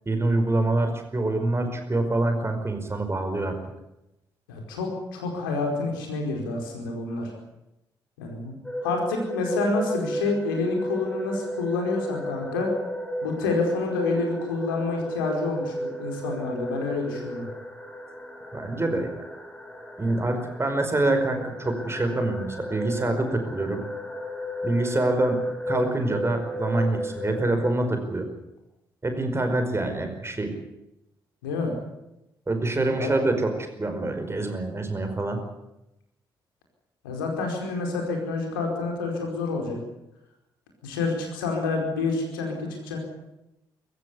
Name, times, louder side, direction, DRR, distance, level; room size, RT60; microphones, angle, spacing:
voice 1, 0.0-3.6 18.5-19.2 20.0-23.8 24.6-25.4 25.7-28.3 29.0-30.5 32.5-33.5 33.8-35.4, right 2 dB, 20° right, 6 dB, 5.1 m, -25 dB
voice 2, 4.5-7.3 8.2-8.5 8.8-12.7 13.2-17.5 31.4-31.7 32.8-33.1 37.0-39.8 40.8-43.0, left 3 dB, 75° left, 2 dB, 4.8 m, -28 dB
sound 1, 8.6-27.7, equal, 5° left, 5.0 m, -34 dB
23.5 x 15.0 x 9.9 m, 0.91 s
figure-of-eight pair, 45°, 11 cm